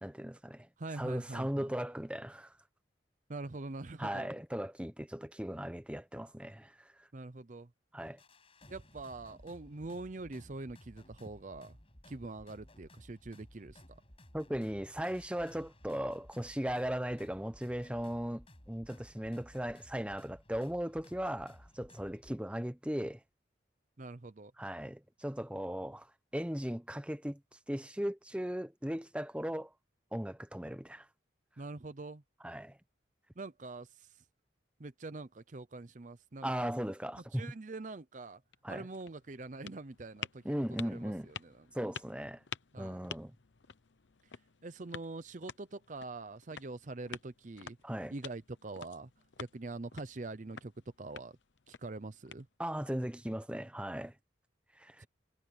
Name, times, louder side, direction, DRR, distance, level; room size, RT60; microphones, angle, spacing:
voice 1, 0.0-0.7 0.9-2.5 4.0-6.9 7.9-8.2 14.3-23.2 24.6-26.1 26.3-27.4 27.7-29.7 30.1-31.1 32.4-32.8 36.4-37.4 38.6-38.9 40.4-41.3 41.7-42.4 42.8-43.3 47.8-48.1 52.6-54.1 54.8-55.0, equal, 5° right, 0.9 m, -37 dB
voice 2, 0.8-1.7 3.3-4.3 7.1-7.7 8.7-11.8 12.0-14.0 24.0-24.5 31.6-32.2 33.4-34.2 34.8-36.7 37.3-38.4 38.7-41.7 42.7-43.1 44.6-47.8 48.1-49.1 49.4-50.7 51.0-51.4 51.7-52.5 55.0-55.1, right 2 dB, 45° right, 0.6 m, -44 dB
sound 1, 8.2-22.3, left 1 dB, 30° left, 6.9 m, -57 dB
sound 2, 38.3-52.9, left 7 dB, 85° left, 0.9 m, -50 dB
head